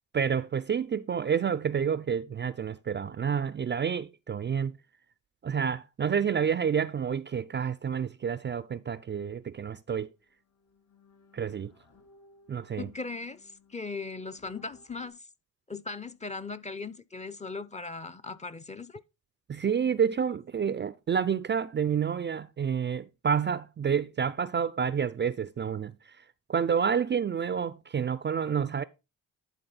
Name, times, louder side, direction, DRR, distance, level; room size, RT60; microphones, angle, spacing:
voice 1, 0.1-4.8 5.4-10.1 11.3-11.7 12.5-12.9 19.5-25.9 26.5-28.8, right 7 dB, 30° right, 0.4 m, -29 dB
sound 1, 10.1-15.1, left 3 dB, 55° left, 3.8 m, -61 dB
voice 2, 12.8-15.2 15.7-19.0, left 4 dB, 20° left, 0.6 m, -38 dB
11.0 x 4.1 x 4.0 m
hypercardioid pair, 50°, 38 cm